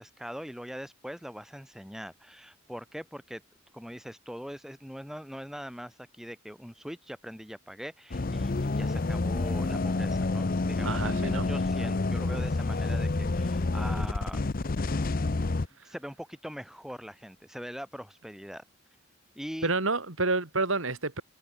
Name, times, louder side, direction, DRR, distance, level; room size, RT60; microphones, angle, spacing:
voice 1, 0.0-3.4 3.7-14.4 15.8-18.6 19.4-19.8, equal, ahead, 7.1 m, -42 dB
sound 1, 8.1-15.7, left 3 dB, 45° left, 0.7 m, -28 dB
voice 2, 10.8-11.4 19.6-21.2, right 3 dB, 80° right, 3.3 m, -29 dB
head